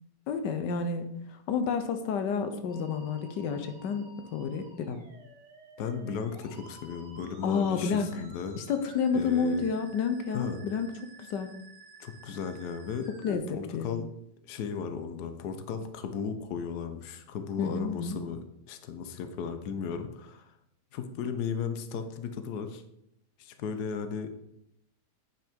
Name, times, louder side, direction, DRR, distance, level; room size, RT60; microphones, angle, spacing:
voice 1, 0.3-5.1 7.4-8.2 8.6-10.9 11.3-11.5 13.2-13.9 17.6-18.2, left 5 dB, 90° left, 8 dB, 1.5 m, -30 dB
Musical instrument, 2.7-13.4, right 3 dB, 75° right, 2.3 m, -53 dB
voice 2, 5.8-8.6 9.1-9.6 10.3-10.6 12.0-14.0 14.5-18.4 18.7-20.5 20.9-22.8 23.4-24.4, left 6 dB, 70° left, 8 dB, 1.3 m, -35 dB
9.0 x 5.7 x 5.2 m, 0.81 s
omnidirectional pair, 1.8 m